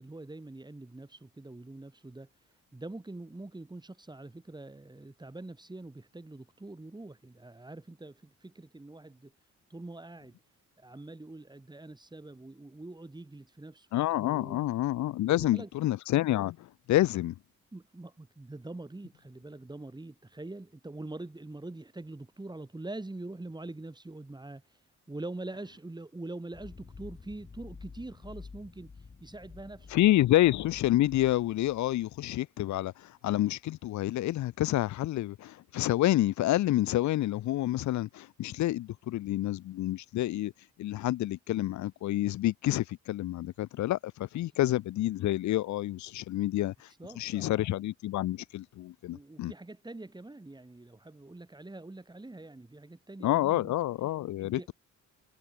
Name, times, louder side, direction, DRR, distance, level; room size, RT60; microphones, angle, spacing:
voice 1, 0.0-10.4 10.8-13.9 14.2-14.7 15.4-15.7 17.7-29.9 46.9-47.7 49.1-53.7 54.4-54.7, right 2 dB, 15° right, 5.3 m, -44 dB
voice 2, 13.9-17.3 29.9-40.5 40.8-46.9 47.2-49.5 53.2-54.7, left 15 dB, 70° left, 0.8 m, -28 dB
sound 1, 26.5-32.2, left 4 dB, 30° left, 4.3 m, -50 dB
cardioid pair, 90°, 30 cm